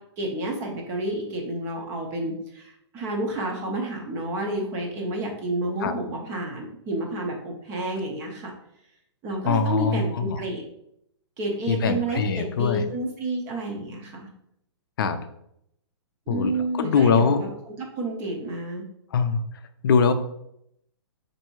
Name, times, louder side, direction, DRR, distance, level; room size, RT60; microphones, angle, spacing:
voice 1, 0.2-8.5 9.2-10.7 11.4-14.3 16.3-18.8, right 1 dB, 15° right, 1 dB, 0.6 m, -30 dB
voice 2, 9.5-10.4 11.7-12.9 15.0-15.2 16.3-17.4 19.1-19.4 19.8-20.1, left 5 dB, 50° left, 9 dB, 0.5 m, -22 dB
4.4 x 2.7 x 4.4 m, 0.76 s
hypercardioid pair, 170°, 15 cm